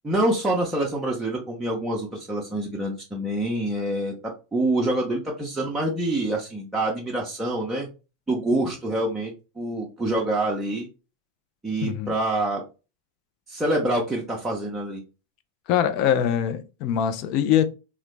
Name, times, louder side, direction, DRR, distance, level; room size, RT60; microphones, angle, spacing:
voice 1, 0.0-4.1 4.5-7.9 8.3-10.9 11.6-12.6 13.5-15.0, right 1 dB, 10° right, 0.6 m, -26 dB
voice 2, 11.8-12.1 15.7-17.6, left 9 dB, 40° left, 0.4 m, -23 dB
3.8 x 2.0 x 3.2 m
figure-of-eight pair, 90°, 0 cm